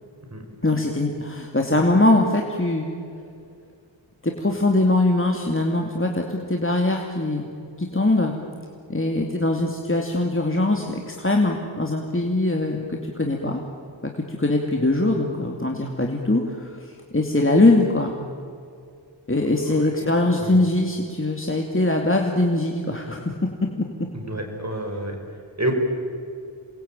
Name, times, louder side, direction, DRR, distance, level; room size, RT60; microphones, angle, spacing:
voice 1, 0.6-2.9 4.2-7.5 7.8-8.3 8.9-13.6 14.3-18.2 19.3-23.3 23.6-23.9, left 2 dB, 30° left, 1 dB, 2.6 m, -22 dB
voice 2, 19.7-20.1 20.4-20.5 24.1-25.2 25.6-25.7, right 1 dB, 35° right, 2 dB, 6.2 m, -29 dB
28.0 x 21.5 x 9.0 m, 2.4 s
wide cardioid pair, 45°, 45 cm